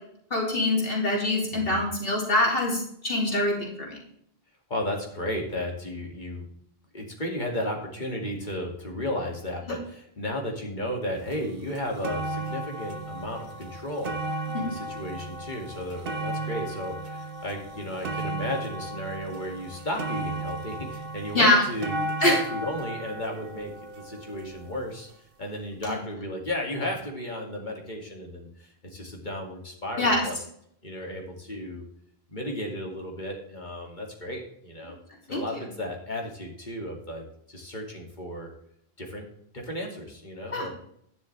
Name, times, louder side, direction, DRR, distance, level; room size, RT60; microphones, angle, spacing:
voice 1, 0.3-4.0 14.5-14.7 21.3-21.6 22.2-22.4 25.9-26.0 30.0-30.2 35.3-35.6 40.5-40.7, left 1 dB, 65° left, -2 dB, 3.0 m, -24 dB
voice 2, 1.5-1.9 4.7-6.5 6.9-14.1 14.6-23.7 24.0-25.1 25.4-30.3 30.8-31.8 32.3-35.0 35.3-38.5 39.0-39.2 39.5-40.7, left 1 dB, 45° left, 0 dB, 2.5 m, -34 dB
sound 1, 11.3-11.4 11.7-24.9 25.7-25.8, right 2 dB, 60° right, 1.2 m, -35 dB
11.5 x 10.5 x 3.3 m, 0.70 s
omnidirectional pair, 1.1 m